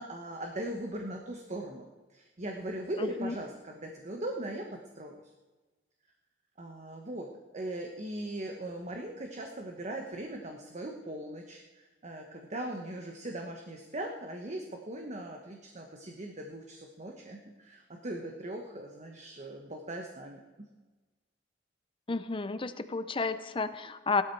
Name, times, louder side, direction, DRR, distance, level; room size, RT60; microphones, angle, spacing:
voice 1, 0.0-5.2 6.6-7.3 7.5-20.7, right 1 dB, 40° right, 2 dB, 1.2 m, -39 dB
voice 2, 3.0-3.3 22.1-24.2, left 4 dB, 30° left, 12 dB, 0.7 m, -32 dB
16.5 x 12.5 x 4.7 m, 1.2 s
head